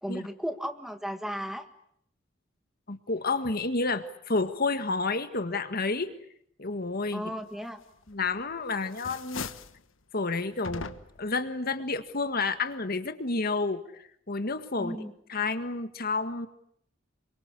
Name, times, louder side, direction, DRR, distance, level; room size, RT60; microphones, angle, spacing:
voice 1, 0.0-1.7 7.1-7.8 14.8-15.1, equal, ahead, 7 dB, 1.8 m, -35 dB
voice 2, 2.9-6.1 6.6-7.3 8.1-9.5 10.1-10.9 11.2-13.8 14.3-15.0 15.3-16.5, left 3 dB, 50° left, 9 dB, 1.7 m, -30 dB
sound 1, 8.1-8.5 8.8-9.8 10.6-11.3, left 5 dB, 85° left, 1.3 m, -39 dB
28.0 x 24.0 x 8.3 m, 0.69 s
head